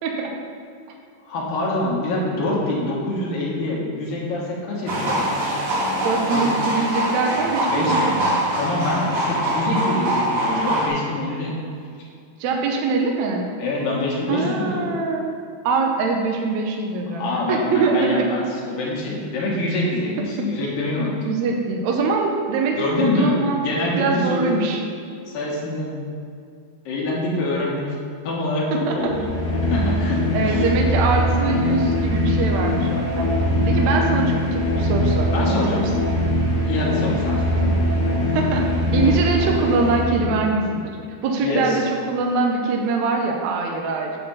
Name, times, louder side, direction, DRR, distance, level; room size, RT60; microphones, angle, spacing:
voice 1, 0.0-0.3 6.0-8.4 12.4-13.4 14.3-15.2 15.6-18.3 20.4-20.5 21.2-23.6 24.0-24.8 28.7-29.1 30.3-33.3 33.7-36.1 38.3-40.9 41.2-44.2, right 4 dB, 75° right, 1 dB, 1.7 m, -23 dB
voice 2, 1.2-5.2 6.3-6.5 7.7-8.0 8.6-11.5 13.6-14.9 17.1-21.3 22.8-24.6 25.3-26.1 26.9-27.9 28.2-29.3 29.7-30.6 35.3-35.9 36.6-37.8 41.4-41.8, left 2 dB, 75° left, -3 dB, 3.0 m, -25 dB
sound 1, 4.9-10.9, right 1 dB, 55° right, 1.9 m, -23 dB
sound 2, 28.9-40.6, left 1 dB, 45° left, 1.3 m, -21 dB
8.6 x 4.2 x 7.0 m, 2.3 s
omnidirectional pair, 4.1 m